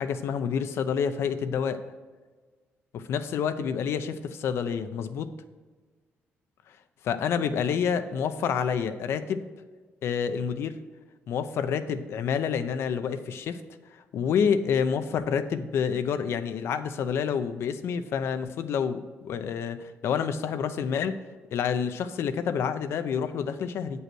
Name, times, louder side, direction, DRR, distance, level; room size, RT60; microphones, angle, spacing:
voice 1, 0.0-1.8 2.9-5.3 7.0-9.4 10.0-10.8 11.3-13.6 14.1-21.2 21.5-24.0, left 7 dB, 70° left, 10 dB, 0.6 m, -28 dB
8.7 x 5.5 x 6.1 m, 1.4 s
cardioid pair, 105°, 4 cm